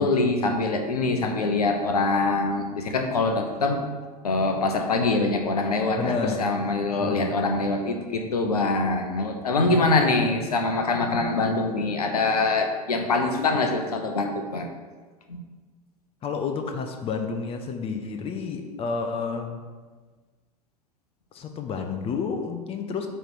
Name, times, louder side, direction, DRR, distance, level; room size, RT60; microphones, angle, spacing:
voice 1, 0.0-3.8 4.2-14.7 15.3-15.4, left 3 dB, 70° left, 4 dB, 0.8 m, -24 dB
voice 2, 6.0-6.5 7.0-7.4 9.7-10.2 16.2-19.7 21.3-23.1, left 5 dB, 30° left, 5 dB, 0.7 m, -30 dB
8.8 x 3.3 x 4.7 m, 1.4 s
figure-of-eight pair, 80°, 20 cm